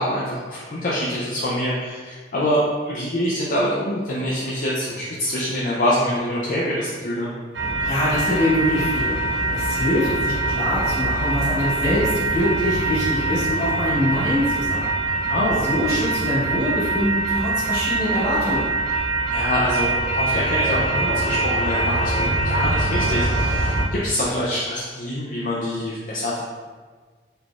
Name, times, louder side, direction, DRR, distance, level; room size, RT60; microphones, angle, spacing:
voice 1, 0.0-7.3 15.3-15.6 19.3-26.4, left 1 dB, 50° left, -6 dB, 0.5 m, -25 dB
sound 1, 7.5-23.8, right 2 dB, 75° right, 0.7 m, -23 dB
voice 2, 7.8-9.2 9.5-14.9 15.6-18.7, left 1 dB, 20° left, -13 dB, 1.1 m, -24 dB
4.0 x 3.3 x 2.3 m, 1.5 s
head